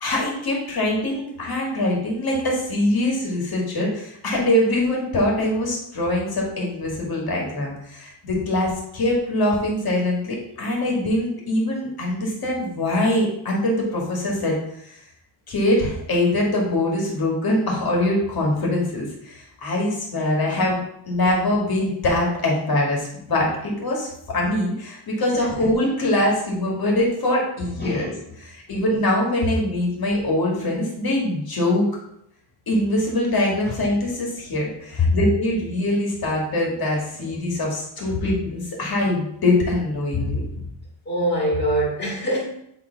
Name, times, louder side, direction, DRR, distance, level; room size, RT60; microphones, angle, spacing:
voice 1, 0.0-14.5 14.8-15.0 15.5-20.8 21.1-28.1 28.4-31.9 32.7-40.4, left 1 dB, 45° left, -2 dB, 2.0 m, -23 dB
voice 2, 27.6-28.2 28.7-28.8 33.7-33.8 35.0-35.2 38.0-38.3 40.1-40.7 41.1-42.4, left 1 dB, 20° left, -4 dB, 2.1 m, -25 dB
8.2 x 3.6 x 3.9 m, 0.75 s
wide cardioid pair, 155°, 50 cm